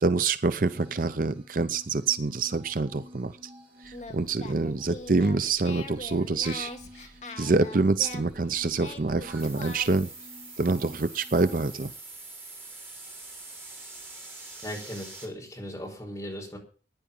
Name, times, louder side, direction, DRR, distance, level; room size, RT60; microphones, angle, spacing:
voice 1, 0.0-3.3 3.8-6.7 7.4-10.1 10.6-11.9, right 3 dB, 50° right, 12 dB, 0.6 m, -26 dB
sound 1, 0.7-11.7, left 1 dB, 30° right, 4.9 m, -51 dB
Singing, 3.8-10.1, left 3 dB, 40° left, 1.9 m, -43 dB
sound 2, 9.3-15.3, right 3 dB, 10° right, 4.3 m, -44 dB
voice 2, 14.6-16.6, equal, 15° left, 0 dB, 5.1 m, -38 dB
15.0 x 10.0 x 5.5 m, 0.39 s
head